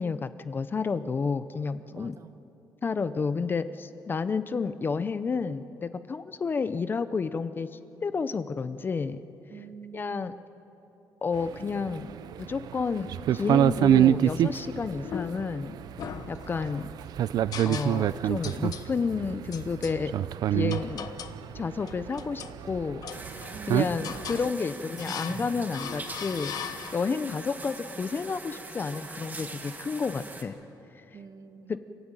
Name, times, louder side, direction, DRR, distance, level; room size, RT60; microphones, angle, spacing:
voice 1, 0.0-2.1 2.8-7.7 8.0-9.2 9.9-10.3 11.2-12.1 12.4-15.8 16.3-16.9 17.6-20.1 20.5-21.0 21.5-23.1 23.4-30.6 31.7-31.8, left 5 dB, 30° left, 12 dB, 0.6 m, -31 dB
voice 2, 1.9-2.4 9.5-10.4 23.5-24.3 31.1-31.8, right 6 dB, 45° right, 9 dB, 1.3 m, -46 dB
sound 1, 11.3-24.5, right 11 dB, 65° right, 0.5 m, -27 dB
sound 2, 15.0-15.6 16.0-16.9 17.5-18.2 18.4-18.9 19.5-20.0 20.7-21.4 21.8-22.6 23.0-23.6 24.0-24.5 25.0-25.4 25.7-27.2, left 8 dB, 60° left, 1.1 m, -39 dB
sound 3, 23.1-30.4, right 3 dB, 25° right, 2.0 m, -41 dB
30.0 x 13.5 x 9.0 m, 3.0 s
cardioid pair, 140°, 7 cm